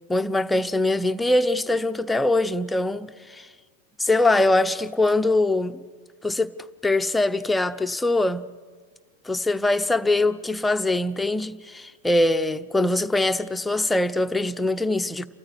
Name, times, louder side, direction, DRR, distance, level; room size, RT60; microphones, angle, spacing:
voice 1, 0.1-3.5 4.0-5.8 6.2-6.5 6.8-8.4 9.2-15.3, left 2 dB, 10° left, 0.9 m, -22 dB
30.0 x 13.5 x 9.9 m
figure-of-eight pair, 95°, 0 cm